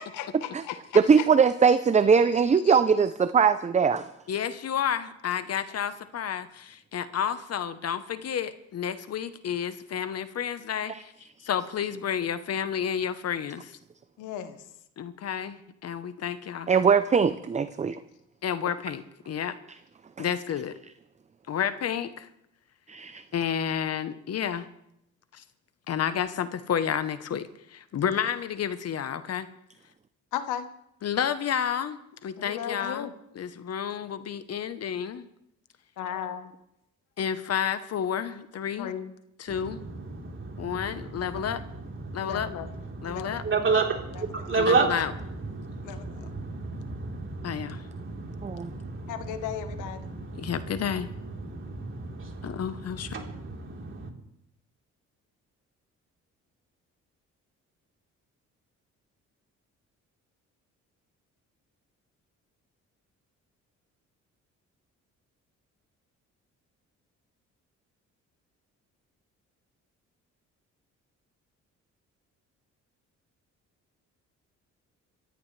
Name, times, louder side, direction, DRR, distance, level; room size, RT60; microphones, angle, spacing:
voice 1, 0.0-1.3 14.2-14.6 30.3-30.7 32.4-33.1 36.0-36.4 38.8-39.1 42.2-42.7 43.0-43.4 45.9-46.3 49.1-50.0, left 9 dB, 90° left, 9 dB, 1.2 m, -35 dB
voice 2, 0.9-4.1 16.7-18.0 22.9-23.2 48.4-48.7, right 6 dB, 25° right, 13 dB, 0.5 m, -21 dB
voice 3, 4.3-11.1 11.4-13.8 15.0-16.7 18.4-19.6 20.2-20.8 21.5-22.3 23.3-24.7 25.3-25.4 25.9-29.5 31.0-33.1 33.3-35.2 37.2-38.9 39.4-39.8 40.6-41.6 42.1-42.5 43.0-43.4 44.6-45.1 47.4-47.8 50.3-51.1 52.4-53.1, left 8 dB, 55° left, 12 dB, 1.0 m, -30 dB
voice 4, 39.5-54.1, right 4 dB, 40° right, 0 dB, 3.7 m, -32 dB
26.5 x 14.5 x 3.3 m, 0.79 s
cardioid pair, 90°, 30 cm